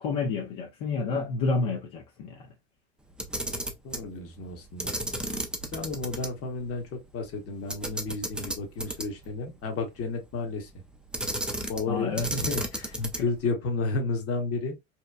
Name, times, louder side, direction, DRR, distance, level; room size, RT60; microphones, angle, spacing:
voice 1, 0.0-2.5 11.9-12.3 13.0-13.1, left 4 dB, 60° left, 0.7 m, -29 dB
Camera, 3.1-4.1 4.8-6.3 6.6-6.7 7.7-9.3 11.1-11.9 12.2-13.4, right 1 dB, 5° right, 0.4 m, -33 dB
voice 2, 3.8-4.9 5.7-10.7 11.7-14.8, left 3 dB, 40° left, 1.0 m, -32 dB
2.9 x 2.1 x 2.2 m
hypercardioid pair, 85°, 36 cm